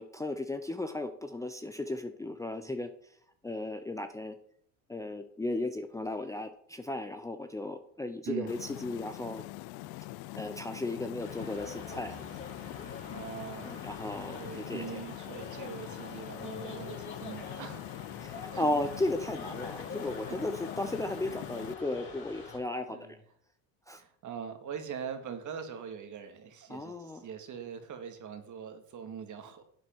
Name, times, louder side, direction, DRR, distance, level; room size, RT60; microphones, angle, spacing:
voice 1, 0.0-2.9 3.4-4.3 4.9-9.4 10.4-12.2 13.6-15.0 18.2-23.2 23.9-24.0 26.7-27.2, left 2 dB, 10° left, 0.7 m, -35 dB
sound 1, 8.5-21.7, left 18 dB, 60° left, 0.6 m, -44 dB
sound 2, 11.2-22.6, left 4 dB, 25° left, 4.7 m, -45 dB
voice 2, 13.1-17.8 18.3-18.7 20.3-20.4 22.4-23.1 23.9-29.6, right 7 dB, 45° right, 2.0 m, -42 dB
11.0 x 8.2 x 4.6 m
supercardioid pair, 100°, 42 cm